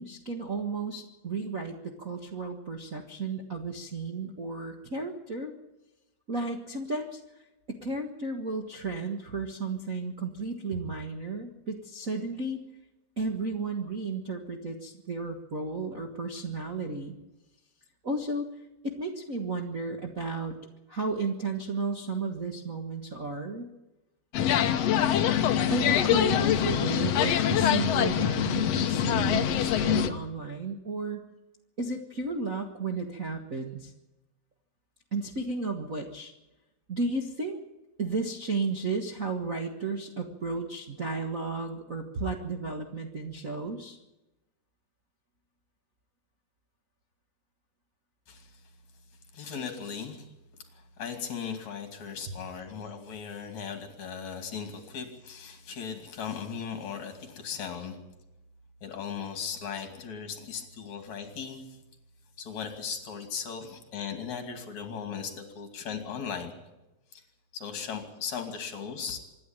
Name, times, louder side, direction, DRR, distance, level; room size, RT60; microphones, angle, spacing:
voice 1, 0.0-5.5 6.3-7.2 7.7-12.6 13.2-17.2 18.0-18.5 18.8-20.5 20.9-23.7 25.7-31.3 31.8-33.9 35.1-36.3 36.9-37.6 38.0-44.0 52.3-52.4, right 3 dB, 85° right, 0 dB, 0.7 m, -33 dB
sound 1, 24.3-30.1, left 10 dB, 75° left, 1.5 m, -24 dB
voice 2, 48.3-48.6 49.3-50.3 50.7-58.0 58.8-61.7 62.4-66.6 67.1-67.2 67.5-69.2, left 6 dB, 55° left, 6 dB, 3.6 m, -37 dB
25.5 x 11.5 x 9.0 m, 0.99 s
omnidirectional pair, 4.3 m